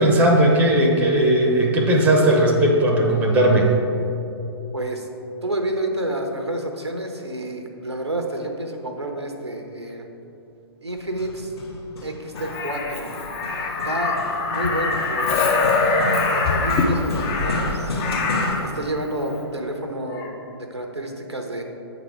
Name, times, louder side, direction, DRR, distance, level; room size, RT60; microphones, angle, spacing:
voice 1, 0.0-3.7, right 1 dB, 10° right, 0 dB, 0.7 m, -17 dB
voice 2, 4.7-5.1 5.4-10.1 10.8-11.5 12.0-13.1 13.8-14.2 14.5-15.4 16.3-18.0 18.6-21.6, right 1 dB, 85° right, 3 dB, 0.9 m, -29 dB
Hammer, 11.0-18.5, left 2 dB, 70° left, 1.5 m, -32 dB
Crow, 12.4-18.7 20.1-20.3, left 3 dB, 25° left, 0.6 m, -23 dB
8.3 x 4.0 x 4.8 m, 2.9 s
figure-of-eight pair, 120°, 14 cm